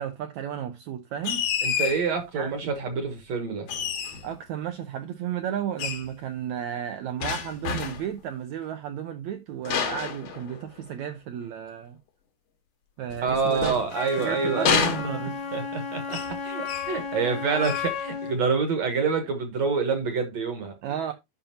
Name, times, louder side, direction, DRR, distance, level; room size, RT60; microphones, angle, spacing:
voice 1, 0.0-1.4 2.3-2.7 4.2-12.0 13.0-13.8 14.2-15.4 20.8-21.1, right 9 dB, 90° right, 1.6 m, -33 dB
sound 1, 1.2-2.1 3.7-4.4 5.8-6.1 7.2-8.1 9.6-10.9 13.1-14.2 14.6-15.5 16.1-16.4 16.6-17.0 17.6-17.9, left 6 dB, 65° left, 2.7 m, -29 dB
voice 2, 1.6-3.7 13.2-14.8 15.5-20.8, right 5 dB, 60° right, 2.0 m, -27 dB
Wind instrument woodwind instrument, 13.9-18.4, left 5 dB, 90° left, 3.2 m, -33 dB
11.0 x 5.6 x 2.8 m
omnidirectional pair, 4.2 m